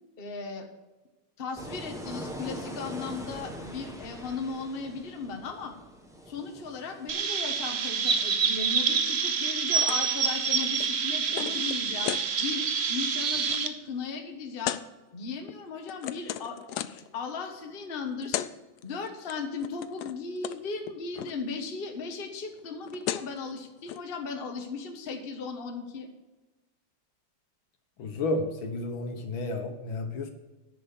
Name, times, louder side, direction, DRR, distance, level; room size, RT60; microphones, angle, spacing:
voice 1, 0.2-0.7 1.4-5.7 6.3-14.8 15.1-16.6 16.8-18.5 18.8-26.1, left 4 dB, 30° left, 3 dB, 1.2 m, -37 dB
sound 1, 1.6-7.7, equal, ahead, 0.9 m, -42 dB
Chirp tweet, 7.1-13.7, right 6 dB, 65° right, 0.6 m, -27 dB
sound 2, 9.8-10.1 10.4-12.3 12.8-13.0 13.3-13.6 14.6-14.8 15.5-17.1 18.0-18.1 18.2-18.5 18.8-19.3 19.6-20.2 20.4-20.6 20.8-21.3 22.6-22.7 22.8-23.4 23.9-24.0, left 12 dB, 90° left, 0.8 m, -35 dB
voice 2, 28.0-30.3, left 2 dB, 70° left, 5 dB, 1.9 m, -31 dB
10.5 x 6.9 x 6.9 m, 1.1 s
omnidirectional pair, 2.3 m